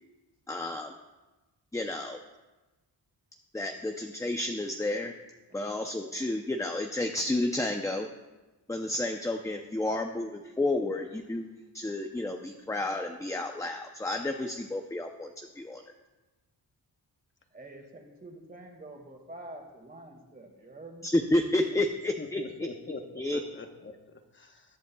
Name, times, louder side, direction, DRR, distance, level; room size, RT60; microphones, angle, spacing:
voice 1, 0.5-0.9 1.7-2.2 3.5-5.1 5.5-8.1 8.7-15.8 21.0-22.4 23.2-23.4, left 1 dB, 10° left, 4 dB, 0.6 m, -31 dB
voice 2, 17.5-21.1, right 1 dB, 20° right, 2 dB, 2.0 m, -47 dB
voice 3, 22.2-24.8, left 3 dB, 30° left, 5 dB, 1.1 m, -43 dB
21.0 x 8.2 x 2.3 m, 1.1 s
wide cardioid pair, 110°, 41 cm